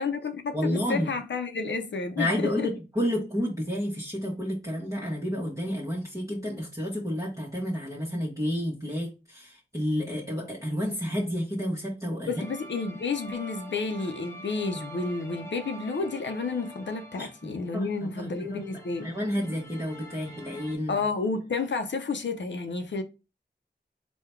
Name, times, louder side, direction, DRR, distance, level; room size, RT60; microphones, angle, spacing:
voice 1, 0.0-2.7 12.3-19.2 20.9-23.0, left 4 dB, 80° left, 0.6 m, -31 dB
voice 2, 0.5-1.1 2.2-12.4 17.1-18.6 19.0-21.0, equal, 15° right, 1.1 m, -30 dB
sound 1, 12.4-20.8, right 1 dB, 15° left, 1.0 m, -46 dB
3.7 x 2.3 x 4.3 m
wide cardioid pair, 50°, 19 cm